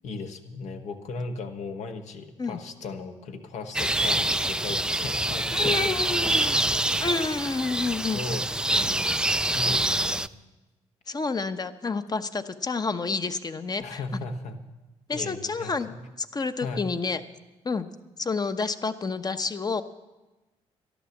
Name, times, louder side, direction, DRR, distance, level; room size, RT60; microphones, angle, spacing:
voice 1, 0.0-6.3 8.1-9.1 9.5-10.3 13.8-14.6 15.1-16.0 16.6-16.9, left 3 dB, 70° left, 5 dB, 1.4 m, -37 dB
sound 1, 3.8-10.3, right 1 dB, 5° right, 0.4 m, -25 dB
voice 2, 5.5-6.6 7.0-8.2 11.1-14.0 15.1-15.9 16.2-17.2 17.6-17.9 18.2-19.8, left 4 dB, 30° left, 10 dB, 0.9 m, -29 dB
12.5 x 11.5 x 7.3 m, 1.1 s
supercardioid pair, 60°, 12 cm